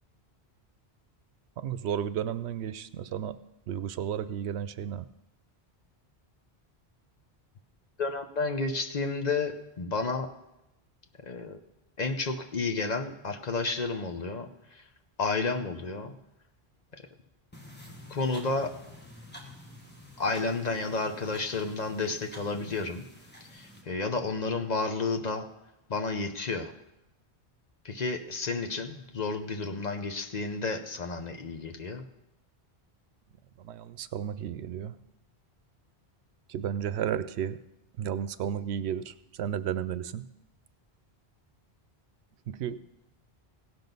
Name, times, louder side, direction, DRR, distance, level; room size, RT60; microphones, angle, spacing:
voice 1, 1.6-3.4 3.7-5.1 33.6-35.0 36.5-37.6 38.0-40.3 42.5-42.8, right 9 dB, 90° right, 14 dB, 0.8 m, -33 dB
voice 2, 8.0-10.3 11.2-11.6 12.0-14.9 15.2-16.1 18.1-18.7 20.2-23.0 23.5-25.5 25.9-26.7 27.8-32.0, left 3 dB, 45° left, 5 dB, 0.8 m, -31 dB
sound 1, 17.5-23.8, left 1 dB, 10° left, 1.4 m, -49 dB
16.5 x 6.0 x 5.3 m, 0.90 s
omnidirectional pair, 1.1 m